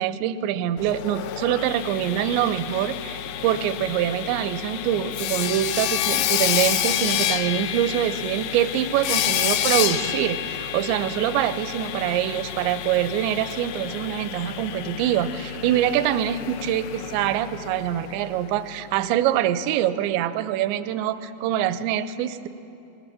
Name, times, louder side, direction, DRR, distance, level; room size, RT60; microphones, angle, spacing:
voice 1, 0.0-22.5, right 11 dB, 85° right, 13 dB, 2.9 m, -25 dB
Sawing, 0.8-18.6, left 11 dB, 85° left, 2.1 m, -29 dB
20.5 x 18.5 x 7.4 m, 2.9 s
omnidirectional pair, 5.0 m